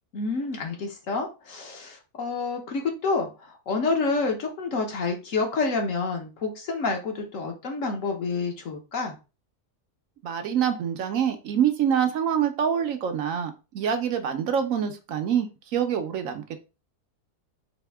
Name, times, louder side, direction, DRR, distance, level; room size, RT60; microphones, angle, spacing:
voice 1, 0.1-9.2, left 3 dB, 60° left, 2 dB, 1.2 m, -28 dB
voice 2, 10.2-16.4, right 8 dB, 65° right, 7 dB, 1.0 m, -26 dB
4.2 x 2.8 x 3.4 m, 0.30 s
omnidirectional pair, 1.6 m